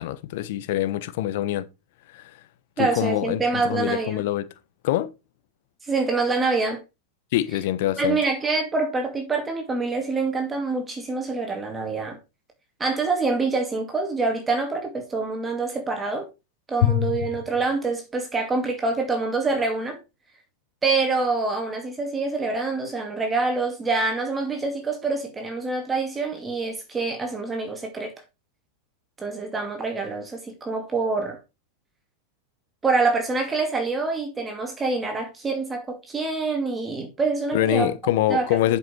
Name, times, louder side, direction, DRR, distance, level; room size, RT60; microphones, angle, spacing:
voice 1, 0.0-1.7 2.1-2.3 2.8-4.5 4.8-5.1 7.3-8.2 16.8-17.1 37.5-38.8, left 13 dB, 60° left, 0.9 m, -24 dB
voice 2, 2.8-4.2 5.8-6.8 8.0-12.2 12.8-16.3 16.7-20.0 20.8-28.1 29.2-31.4 32.8-37.9 38.3-38.5, right 3 dB, 15° right, 2.1 m, -26 dB
7.4 x 5.6 x 4.3 m
hypercardioid pair, 100°, 0 cm